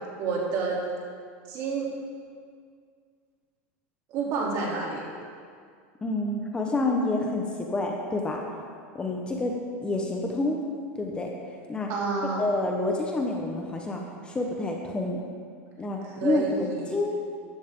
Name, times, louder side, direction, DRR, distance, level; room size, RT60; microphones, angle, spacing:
voice 1, 0.2-0.8 1.5-1.9 4.1-5.1 11.9-12.5 16.0-17.0, right 4 dB, 50° right, -3 dB, 3.3 m, -29 dB
voice 2, 6.0-8.4 8.9-10.6 10.9-11.3 11.7-11.9 12.4-15.2 15.8-17.2, left 2 dB, 15° left, 0 dB, 1.2 m, -28 dB
14.0 x 11.5 x 3.8 m, 2.1 s
supercardioid pair, 140°, 7 cm